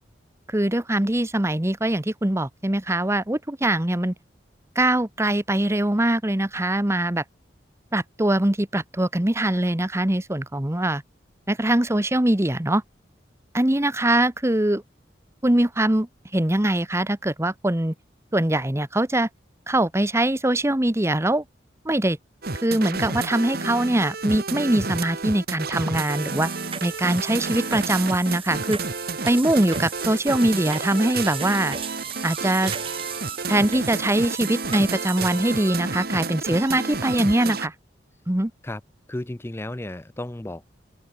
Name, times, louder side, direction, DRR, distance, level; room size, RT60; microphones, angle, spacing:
voice 1, 0.5-4.1 4.7-7.2 7.9-11.0 11.5-12.8 13.5-14.8 15.4-16.1 16.3-17.9 18.3-19.3 19.7-21.4 21.8-22.2 22.6-26.5 26.8-28.8 29.2-31.8 32.2-32.7 33.5-37.7 38.3-38.5, right 1 dB, 15° right, 1.1 m, -22 dB
sound 1, 22.4-37.7, right 3 dB, 55° right, 2.5 m, -31 dB
sound 2, 25.9-35.7, right 7 dB, 30° right, 2.0 m, -37 dB
voice 2, 39.1-40.7, left 1 dB, 15° left, 0.6 m, -33 dB
open air
head